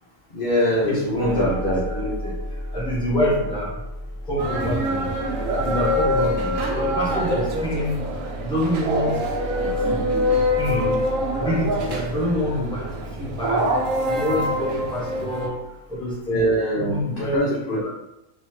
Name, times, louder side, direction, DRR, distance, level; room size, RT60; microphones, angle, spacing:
voice 1, 0.3-1.8 16.3-17.9, equal, 55° left, -5 dB, 0.6 m, -23 dB
voice 2, 0.9-1.5 1.9-2.4 2.7-3.7 4.3-5.1 5.6-7.9 8.4-9.1 9.9-10.3 10.6-11.0 11.4-12.8 13.2-13.6 14.1-15.5 15.9-16.4 16.7-17.4 17.6-17.9, equal, 5° left, -6 dB, 0.7 m, -26 dB
sound 1, 1.2-15.4, equal, 35° right, 1.0 m, -34 dB
sound 2, 4.4-15.5, equal, 70° right, 0.9 m, -25 dB
3.0 x 2.7 x 3.1 m, 0.90 s
omnidirectional pair, 1.5 m